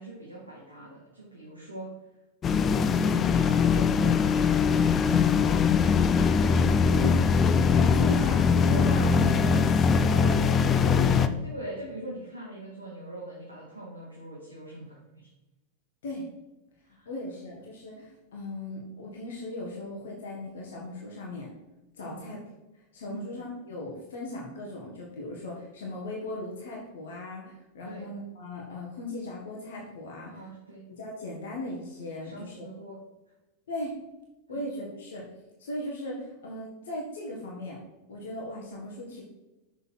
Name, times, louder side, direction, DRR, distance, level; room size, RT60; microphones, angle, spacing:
voice 1, 0.0-1.9 2.4-3.0 3.3-6.0 6.9-7.0 11.4-15.3 17.0-17.1 22.0-22.3 23.2-23.4 27.8-28.0 30.2-30.8 32.2-33.0, right 1 dB, 85° right, -4 dB, 1.9 m, -43 dB
sound 1, 2.4-11.3, left 6 dB, 25° left, 0.5 m, -22 dB
voice 2, 7.7-11.3 16.0-16.3 17.1-21.5 22.0-22.4 22.9-30.5 31.0-32.7 33.7-34.0 34.5-35.3 35.6-37.8 38.1-39.2, left 1 dB, 60° left, -2 dB, 1.7 m, -38 dB
6.9 x 6.8 x 4.5 m, 1.1 s
figure-of-eight pair, 90°, 0 cm